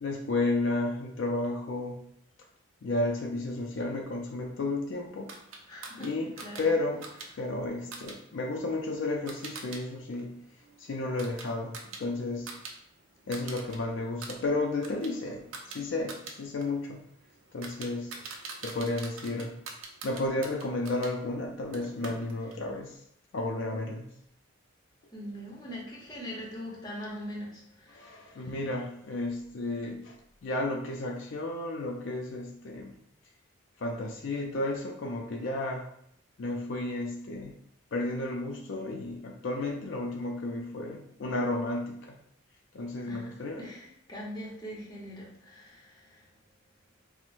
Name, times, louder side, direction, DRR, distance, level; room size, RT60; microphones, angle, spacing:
voice 1, 0.0-2.0 2.8-5.3 6.0-7.1 7.4-10.3 10.8-12.5 13.3-17.0 17.5-18.1 18.6-19.6 20.0-23.0 23.3-24.1 27.9-30.2 30.4-33.0 33.8-35.8 36.4-37.6 37.9-42.2 42.7-43.7, left 2 dB, 65° left, 0 dB, 0.4 m, -32 dB
sound 1, 5.3-9.8 10.1-12.7 13.0-13.8 14.1-21.1 21.7-22.6, right 4 dB, 85° right, 0.5 m, -45 dB
voice 2, 5.7-6.1 6.4-6.6 25.1-28.5 43.1-43.3 43.6-46.3, equal, 20° left, -4 dB, 0.8 m, -42 dB
4.3 x 2.1 x 2.5 m, 0.70 s
head